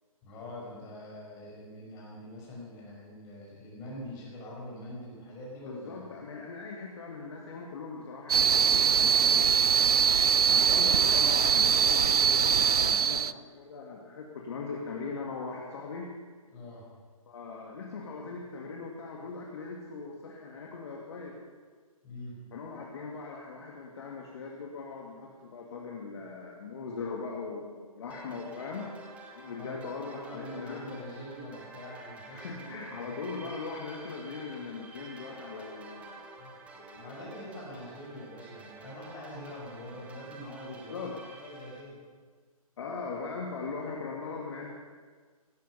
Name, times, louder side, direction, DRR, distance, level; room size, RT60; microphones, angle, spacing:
voice 1, 0.2-6.1 16.5-16.8 22.0-22.4 29.5-33.6 36.4-36.5 37.0-42.0, left 1 dB, 15° left, -4 dB, 5.5 m, -44 dB
voice 2, 5.7-10.0 10.5-16.1 17.3-21.4 22.5-28.9 29.3-31.0 32.3-36.3 36.7-37.3 40.6-41.1 42.8-44.7, left 4 dB, 45° left, -1 dB, 2.2 m, -40 dB
sound 1, 8.3-13.3, right 7 dB, 85° right, 0.5 m, -23 dB
sound 2, 28.1-41.8, right 3 dB, 5° right, 1.1 m, -50 dB
16.5 x 13.5 x 5.7 m, 1.6 s
hypercardioid pair, 155°, 19 cm